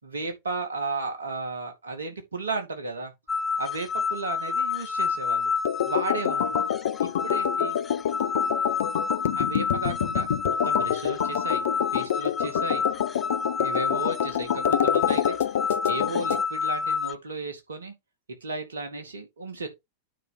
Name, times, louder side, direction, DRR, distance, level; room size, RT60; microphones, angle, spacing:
voice 1, 0.0-3.1 3.6-5.5 5.8-6.6 7.0-7.8 9.4-11.6 11.9-12.9 13.6-15.4 15.9-17.9 18.3-19.7, right 3 dB, 70° right, 2.3 m, -34 dB
sound 1, 3.3-17.1, left 5 dB, 15° left, 0.6 m, -29 dB
sound 2, 5.6-16.4, left 9 dB, 60° left, 0.6 m, -27 dB
9.1 x 4.8 x 4.2 m
figure-of-eight pair, 90°, 0 cm